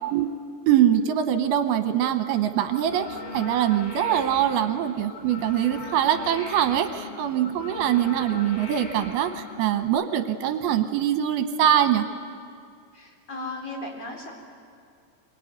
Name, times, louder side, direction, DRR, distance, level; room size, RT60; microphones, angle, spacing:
voice 1, 0.7-3.1 3.3-12.1, right 10 dB, 80° right, 7 dB, 2.8 m, -23 dB
sound 1, 2.7-9.8, left 3 dB, 65° left, 6.1 m, -39 dB
voice 2, 12.9-14.3, left 2 dB, 40° left, 0 dB, 5.0 m, -36 dB
25.5 x 23.0 x 9.4 m, 2.3 s
omnidirectional pair, 4.6 m